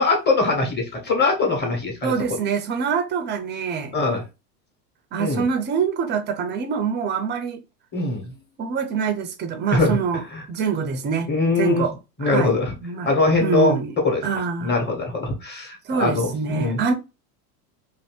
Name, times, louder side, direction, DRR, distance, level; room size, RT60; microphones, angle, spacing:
voice 1, 0.0-2.1 3.9-4.2 5.2-5.5 7.9-8.3 9.7-10.0 10.3-10.4 11.3-11.9 12.2-12.7 13.0-13.8 14.0-14.2 14.6-16.8, left 3 dB, 20° left, 1.3 m, -22 dB
voice 2, 2.0-4.0 5.1-7.6 8.6-10.2 10.5-11.3 11.6-11.9 12.2-12.5 12.8-13.1 13.4-13.9 14.2-14.8 15.9-16.9, right 6 dB, 25° right, 0.4 m, -25 dB
2.5 x 2.5 x 3.3 m
hypercardioid pair, 105°, 49 cm